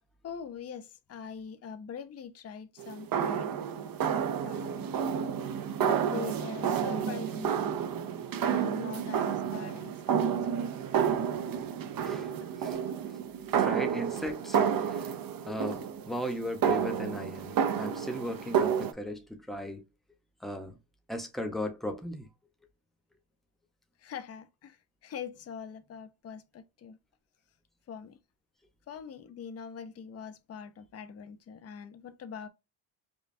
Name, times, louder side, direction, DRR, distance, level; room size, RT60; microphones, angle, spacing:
voice 1, 0.2-3.5 4.4-4.9 6.0-7.8 8.4-10.3 10.7-10.8 12.3-12.5 24.0-27.0 27.9-28.2 28.9-32.5, left 7 dB, 35° left, 0.5 m, -43 dB
sound 1, 2.8-18.9, right 8 dB, 50° right, 0.6 m, -30 dB
voice 2, 13.5-15.1 15.5-19.8 20.4-20.8 21.1-22.3, left 1 dB, ahead, 0.7 m, -37 dB
5.2 x 2.3 x 2.6 m
cardioid pair, 125°, 47 cm